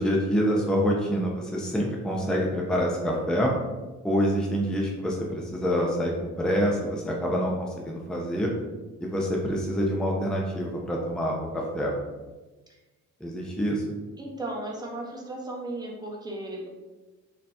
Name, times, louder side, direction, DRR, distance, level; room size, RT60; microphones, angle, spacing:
voice 1, 0.0-3.5 4.0-8.5 9.0-11.9 13.2-14.0, equal, 5° left, -2 dB, 0.6 m, -26 dB
voice 2, 14.2-16.7, right 1 dB, 15° right, -2 dB, 1.0 m, -35 dB
3.9 x 2.9 x 3.3 m, 1.2 s
cardioid pair, 90°, 30 cm